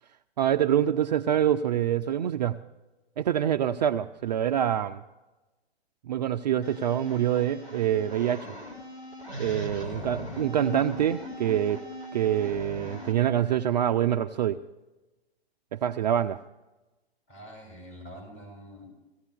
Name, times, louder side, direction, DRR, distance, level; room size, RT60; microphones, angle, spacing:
voice 1, 0.4-2.6 3.2-5.0 6.1-8.5 9.4-11.8 12.1-14.6 15.7-16.4, right 10 dB, 45° right, 9 dB, 0.4 m, -25 dB
sound 1, 6.6-13.1, left 1 dB, 80° left, 3.8 m, -39 dB
voice 2, 9.8-10.5 17.3-18.9, equal, 20° left, -1 dB, 6.4 m, -46 dB
17.5 x 15.5 x 3.3 m, 1.1 s
figure-of-eight pair, 120°, 32 cm